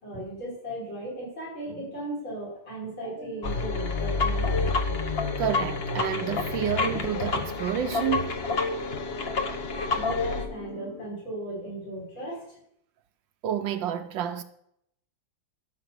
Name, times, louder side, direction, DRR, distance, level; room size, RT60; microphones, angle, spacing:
voice 1, 0.0-4.6 9.9-12.4, right 1 dB, 70° left, 6.1 m, -36 dB
sound 1, 3.0-11.0, left 1 dB, 90° left, 4.8 m, -42 dB
sound 2, 3.4-10.5, left 4 dB, 40° left, 0.9 m, -28 dB
voice 2, 5.4-8.3 13.4-14.4, right 10 dB, 70° right, 1.3 m, -29 dB
13.0 x 5.9 x 6.7 m
omnidirectional pair, 2.3 m